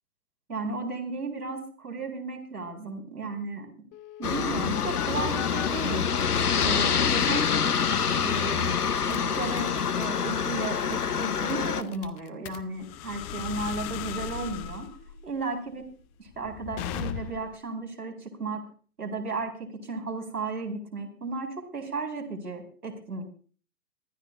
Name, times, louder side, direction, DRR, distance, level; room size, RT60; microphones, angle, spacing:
voice 1, 0.5-3.7 4.2-6.1 6.6-14.9 15.2-15.9 16.2-18.7 19.0-23.2, right 3 dB, 85° right, 1 dB, 4.4 m, -35 dB
sound 1, 3.9-5.7 6.2-6.8 7.3-7.5 7.9-8.2 8.5-17.6, left 10 dB, 15° left, 0.5 m, -38 dB
Aircraft, 4.2-11.8, left 6 dB, 85° left, 0.9 m, -26 dB
24.0 x 13.0 x 2.5 m, 0.40 s
figure-of-eight pair, 115°, 45 cm